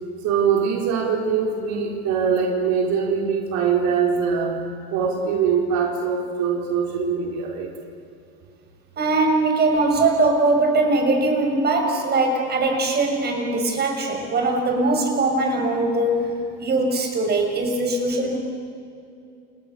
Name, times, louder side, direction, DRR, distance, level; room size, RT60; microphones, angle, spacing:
voice 1, 0.2-4.6 4.9-7.7, right 6 dB, 60° right, 0 dB, 4.7 m, -22 dB
voice 2, 9.0-18.4, right 2 dB, 30° right, 3 dB, 6.6 m, -21 dB
30.0 x 28.5 x 7.0 m, 2.5 s
cardioid pair, 130°, 32 cm